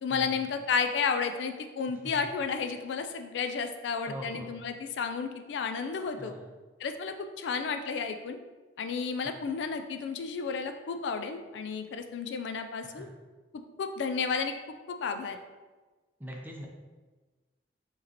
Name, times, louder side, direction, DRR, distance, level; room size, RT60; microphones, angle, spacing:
voice 1, 0.0-6.4 6.8-8.4 8.8-13.1 13.5-14.6 14.9-15.4, left 5 dB, 75° left, 7 dB, 0.3 m, -32 dB
voice 2, 4.1-4.6 6.2-6.5 12.8-13.1 16.2-16.7, equal, 10° right, -1 dB, 0.6 m, -42 dB
4.7 x 3.1 x 2.9 m, 1.3 s
head